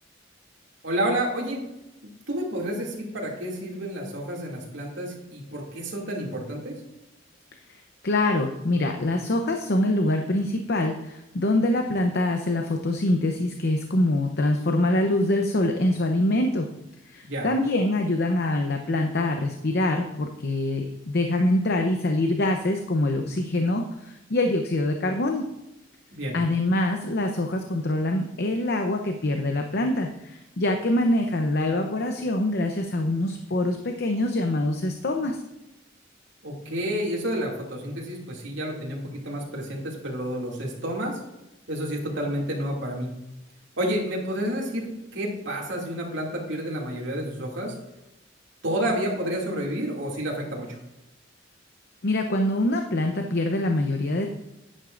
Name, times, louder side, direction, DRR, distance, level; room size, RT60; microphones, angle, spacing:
voice 1, 0.8-1.6 2.3-6.8 17.3-17.5 26.1-26.4 36.4-41.2 41.7-43.1 43.8-47.7 48.6-50.8, right 1 dB, 75° right, -2 dB, 2.5 m, -30 dB
voice 2, 8.0-16.7 17.1-23.8 24.3-25.5 26.3-35.4 52.0-54.3, left 1 dB, 60° left, 4 dB, 0.8 m, -24 dB
11.0 x 10.0 x 2.5 m, 0.93 s
head